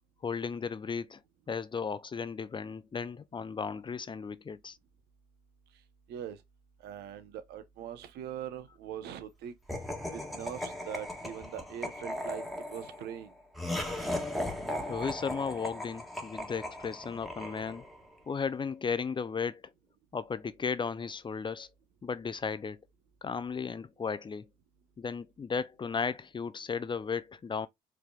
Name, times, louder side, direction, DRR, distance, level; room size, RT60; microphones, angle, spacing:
voice 1, 0.2-1.2 1.5-4.8 14.8-17.9 18.3-19.6 20.1-21.7 22.0-22.8 23.2-24.5 25.0-27.7, left 5 dB, 30° left, 0.5 m, -35 dB
voice 2, 6.1-6.4 6.8-9.5 10.1-12.4 12.7-13.3, right 10 dB, 70° right, 0.8 m, -41 dB
Laughter, 9.7-18.1, left 1 dB, ahead, 1.4 m, -37 dB
4.8 x 3.3 x 2.3 m
hypercardioid pair, 60°, 17 cm